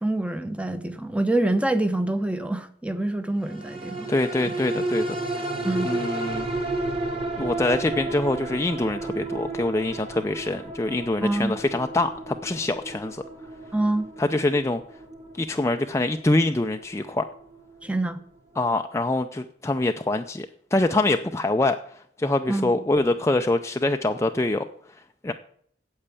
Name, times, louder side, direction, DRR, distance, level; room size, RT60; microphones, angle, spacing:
voice 1, 0.0-4.1 5.6-5.9 11.2-11.5 13.7-14.1 17.8-18.2 22.5-22.7, right 2 dB, 5° right, 0.8 m, -26 dB
sound 1, 3.5-18.1 18.6-18.7, right 2 dB, 30° right, 1.8 m, -33 dB
voice 2, 4.1-5.5 5.8-6.5 7.4-13.2 14.2-14.8 15.3-17.2 18.6-21.8 22.2-24.6 25.2-25.3, left 2 dB, 15° left, 0.5 m, -24 dB
8.7 x 7.9 x 8.4 m
head